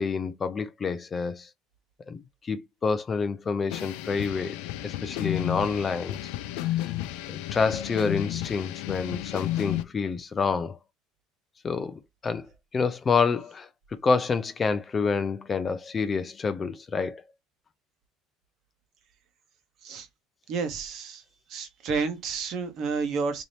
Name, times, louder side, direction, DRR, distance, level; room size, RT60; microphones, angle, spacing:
voice 1, 0.0-1.5 2.1-2.2 2.4-4.6 4.8-6.2 6.8-6.9 7.3-10.8 11.6-12.5 12.7-13.7 14.0-17.2, left 5 dB, 20° left, 0.3 m, -28 dB
sound 1, 3.7-9.8, left 14 dB, 80° left, 0.5 m, -32 dB
voice 2, 20.5-21.2 21.5-23.4, right 5 dB, 45° right, 0.9 m, -30 dB
3.3 x 2.8 x 4.0 m
cardioid pair, 165°, 0 cm